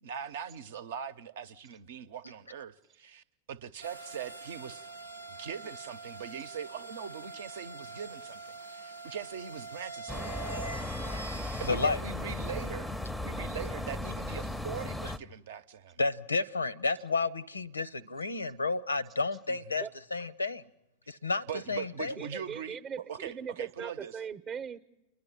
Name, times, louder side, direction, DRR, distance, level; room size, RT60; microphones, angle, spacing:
voice 1, 0.0-4.9 5.3-10.6 11.6-16.0 19.5-19.8 21.5-22.8 23.1-24.2, right 8 dB, 60° right, 0.8 m, -41 dB
sound 1, 3.8-11.7, right 3 dB, 85° right, 0.8 m, -44 dB
sound 2, 10.1-15.2, left 1 dB, ahead, 0.7 m, -36 dB
voice 2, 11.7-12.0 16.0-19.8 20.1-20.6 21.1-22.1, left 3 dB, 80° left, 0.7 m, -31 dB
voice 3, 22.2-24.8, right 7 dB, 25° right, 0.8 m, -40 dB
29.0 x 11.0 x 10.0 m
figure-of-eight pair, 90°, 0 cm